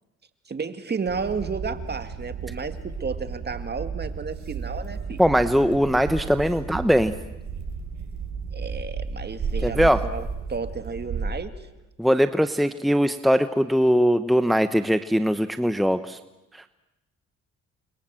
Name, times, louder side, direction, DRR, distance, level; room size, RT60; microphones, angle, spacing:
voice 1, 0.5-5.2 8.5-11.5, right 5 dB, 35° right, 9 dB, 2.3 m, -32 dB
sound 1, 1.1-11.3, right 5 dB, 70° right, 6.0 m, -33 dB
voice 2, 5.2-7.1 9.6-10.0 12.0-16.2 16.5-16.7, equal, ahead, 10 dB, 1.0 m, -21 dB
30.0 x 24.0 x 7.7 m, 0.98 s
cardioid pair, 90°, 30 cm